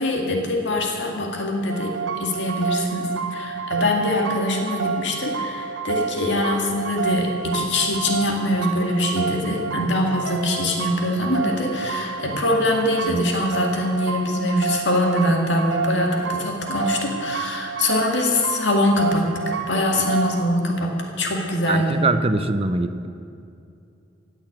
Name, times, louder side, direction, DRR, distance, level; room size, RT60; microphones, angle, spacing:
voice 1, 0.0-20.9 21.2-22.0, left 1 dB, 65° left, 1 dB, 2.1 m, -23 dB
sound 1, 1.7-20.4, right 5 dB, 75° right, 1.2 m, -29 dB
voice 2, 21.7-23.1, right 3 dB, 30° right, 10 dB, 0.7 m, -22 dB
16.0 x 8.0 x 8.8 m, 2.5 s
head